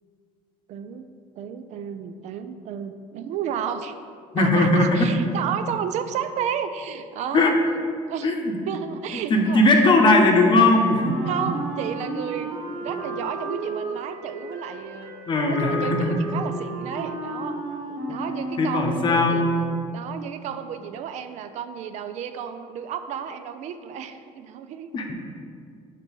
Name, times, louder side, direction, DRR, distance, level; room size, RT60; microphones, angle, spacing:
voice 1, 0.7-4.0 4.4-7.6 8.1-8.4 8.7-9.6 11.3-15.1 15.4-19.4 19.9-24.9, right 8 dB, 60° right, 9 dB, 0.4 m, -32 dB
voice 2, 4.3-5.1 7.3-7.5 8.2-8.6 9.1-11.4 15.3-16.2 18.1-18.2 18.6-19.5 24.9-25.1, left 2 dB, 35° left, 3 dB, 0.8 m, -19 dB
Wind instrument woodwind instrument, 11.0-19.1, right 2 dB, 45° right, 1.2 m, -33 dB
6.3 x 4.0 x 5.3 m, 2.3 s
cardioid pair, 135°, 13 cm